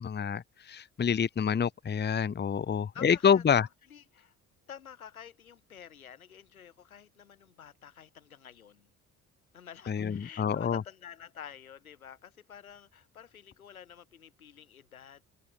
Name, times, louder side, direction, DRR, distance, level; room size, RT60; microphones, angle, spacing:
voice 1, 0.0-3.7 9.9-10.8, left 7 dB, 25° left, 0.9 m, -27 dB
voice 2, 2.6-4.3 4.7-8.9 9.5-15.2, left 8 dB, 90° left, 3.4 m, -50 dB
figure-of-eight pair, 50°, 41 cm